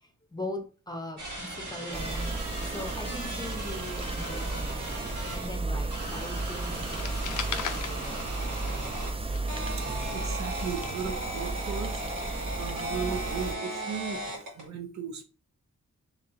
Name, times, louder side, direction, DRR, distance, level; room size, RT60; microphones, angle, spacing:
voice 1, 0.9-4.8 5.3-9.0, left 1 dB, 15° left, 5 dB, 0.8 m, -40 dB
sound 1, 1.2-5.5 5.9-9.1 9.5-14.7, right 1 dB, 80° right, 1.5 m, -37 dB
sound 2, 1.9-13.5, right 2 dB, 20° right, 0.4 m, -34 dB
sound 3, 6.9-8.9 9.2-11.4, left 7 dB, 80° left, 0.5 m, -38 dB
voice 2, 9.8-12.0 12.6-15.2, right 6 dB, 65° right, 6 dB, 0.7 m, -36 dB
3.0 x 2.8 x 3.8 m, 0.36 s
wide cardioid pair, 85°, 30 cm